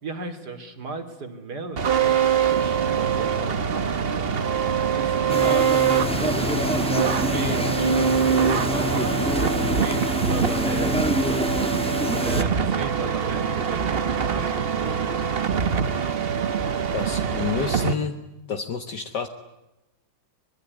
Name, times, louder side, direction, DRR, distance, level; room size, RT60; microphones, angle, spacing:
voice 1, 0.0-4.3 4.9-6.6 7.3-9.3 9.8-11.4 12.2-15.3, right 3 dB, 55° right, 8 dB, 3.4 m, -36 dB
sound 1, 1.8-17.9, right 7 dB, 40° right, 1.0 m, -24 dB
sound 2, 5.3-12.4, left 1 dB, 5° left, 1.3 m, -26 dB
voice 2, 16.9-18.2 18.5-19.3, left 6 dB, 60° left, 6 dB, 1.9 m, -29 dB
24.5 x 22.0 x 9.5 m, 0.95 s
omnidirectional pair, 2.1 m